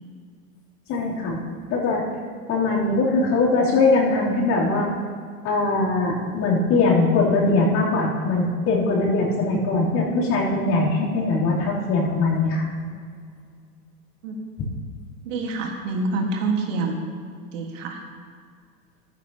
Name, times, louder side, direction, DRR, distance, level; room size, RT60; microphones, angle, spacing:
voice 1, 0.9-1.4 1.7-2.0 2.5-4.9 5.4-12.7, left 3 dB, 35° left, -4 dB, 3.3 m, -21 dB
voice 2, 15.3-17.0 17.5-18.0, right 3 dB, 55° right, 2 dB, 1.7 m, -26 dB
14.0 x 11.5 x 2.9 m, 2.1 s
hypercardioid pair, 100°, 46 cm